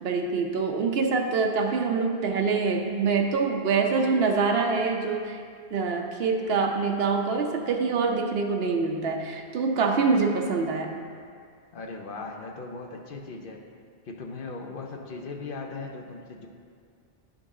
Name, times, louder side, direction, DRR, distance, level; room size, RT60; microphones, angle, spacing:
voice 1, 0.0-5.4 5.7-10.9, right 4 dB, 70° right, 3 dB, 0.9 m, -25 dB
voice 2, 11.7-13.6 14.0-16.5, left 3 dB, 60° left, 2 dB, 0.8 m, -38 dB
11.5 x 3.8 x 3.7 m, 2.2 s
omnidirectional pair, 1.1 m